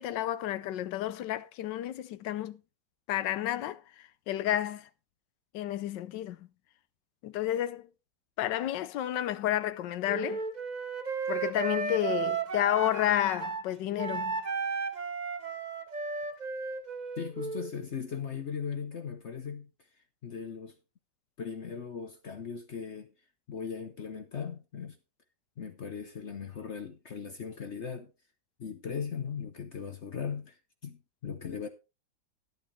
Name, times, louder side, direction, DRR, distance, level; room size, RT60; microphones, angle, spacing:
voice 1, 0.0-2.6 3.1-3.8 4.3-4.9 5.5-6.5 7.2-7.8 8.4-10.4 11.3-14.4, left 12 dB, 75° left, 1.3 m, -31 dB
Wind instrument woodwind instrument, 10.1-13.6 14.0-17.7, right 5 dB, 35° right, 0.7 m, -34 dB
voice 2, 17.2-19.7 20.2-20.8 21.4-23.1 23.5-25.0 25.6-28.1 28.6-30.6 30.8-31.7, left 6 dB, 50° left, 0.9 m, -38 dB
12.0 x 10.5 x 3.2 m
omnidirectional pair, 2.0 m